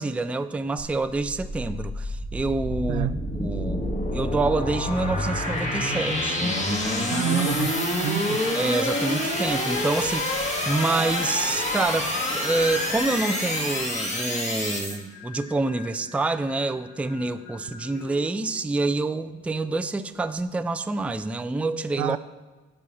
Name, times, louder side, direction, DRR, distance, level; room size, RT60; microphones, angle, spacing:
voice 1, 0.0-3.1 3.3-7.5 8.5-22.2, right 3 dB, 5° right, 11 dB, 0.3 m, -27 dB
sound 1, 0.8-15.0, left 1 dB, 25° left, 1.6 m, -27 dB
Singing, 4.2-20.4, left 4 dB, 80° left, 1.7 m, -45 dB
voice 2, 7.1-8.4 22.0-22.2, right 12 dB, 75° right, 15 dB, 0.5 m, -28 dB
8.4 x 5.5 x 6.0 m, 1.2 s
cardioid pair, 90°, 30 cm